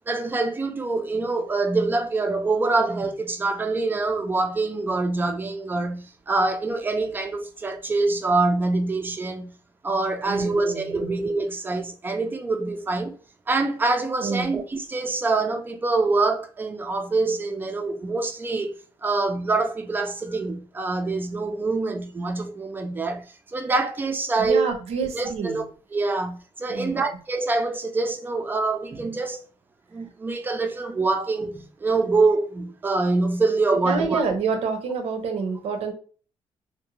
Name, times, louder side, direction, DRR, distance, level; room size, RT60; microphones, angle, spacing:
voice 1, 0.1-9.5 9.8-13.2 13.5-18.7 19.0-24.7 25.1-25.6 25.9-29.4 29.9-34.2, right 3 dB, 20° right, 0.3 m, -25 dB
voice 2, 10.2-11.1 14.2-14.5 24.4-25.6 26.7-27.0 33.8-35.9, right 5 dB, 75° right, 0.6 m, -28 dB
2.6 x 2.1 x 2.9 m
cardioid pair, 165°, 11 cm